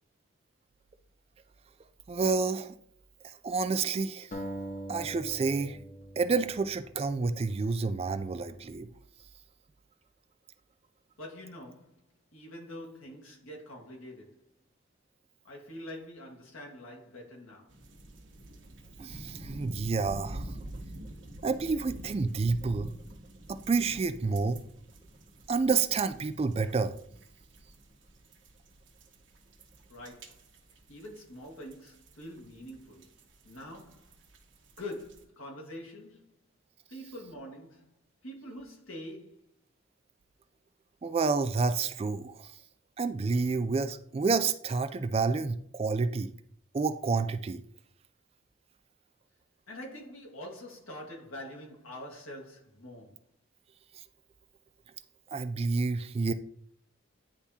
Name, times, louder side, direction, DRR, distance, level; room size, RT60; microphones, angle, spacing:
voice 1, 2.1-2.8 3.2-4.3 4.9-5.8 6.2-8.9 19.0-20.6 21.4-22.9 23.5-24.6 25.5-27.0 41.0-42.5 43.0-46.3 46.7-47.6 55.3-56.3, right 4 dB, 30° right, 0.3 m, -29 dB
sound 1, 4.3-7.5, right 1 dB, 40° left, 0.7 m, -42 dB
voice 2, 11.2-11.9 12.3-14.4 15.4-17.7 29.9-30.3 30.9-33.1 33.4-34.1 34.8-36.4 36.9-37.9 38.2-39.5 49.7-53.2, left 1 dB, 90° left, 1.7 m, -45 dB
sound 2, 17.7-35.2, right 1 dB, 65° right, 1.1 m, -47 dB
9.7 x 3.5 x 2.8 m
head